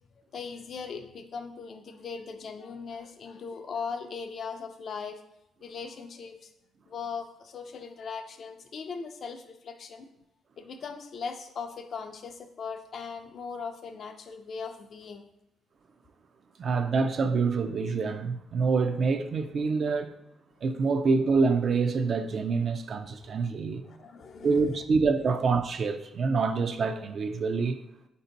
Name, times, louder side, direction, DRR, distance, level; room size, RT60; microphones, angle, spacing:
voice 1, 0.3-5.2 5.6-6.5 6.9-10.1 10.6-15.3 23.2-23.3 23.8-24.6, left 5 dB, 55° left, 0.4 m, -39 dB
voice 2, 16.6-20.1 20.6-23.8 24.4-27.8, right 4 dB, 50° right, 0.4 m, -26 dB
4.3 x 2.7 x 3.9 m
cardioid pair, 90°, 0 cm